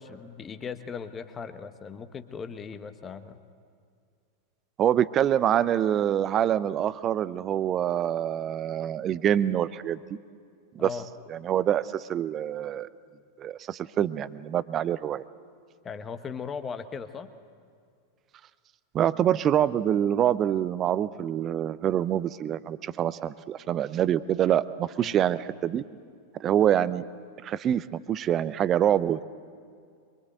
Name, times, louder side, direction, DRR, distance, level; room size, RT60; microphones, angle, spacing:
voice 1, 0.0-3.4 10.8-11.1 15.8-17.3 25.0-25.1, left 6 dB, 20° left, 9 dB, 1.2 m, -38 dB
voice 2, 4.8-10.0 10.7-10.9 11.3-12.9 13.4-15.2 18.9-25.8 26.4-27.0 27.4-29.2, right 10 dB, 30° right, 17 dB, 0.7 m, -25 dB
24.5 x 23.5 x 8.1 m, 2.2 s
figure-of-eight pair, 90°, 0 cm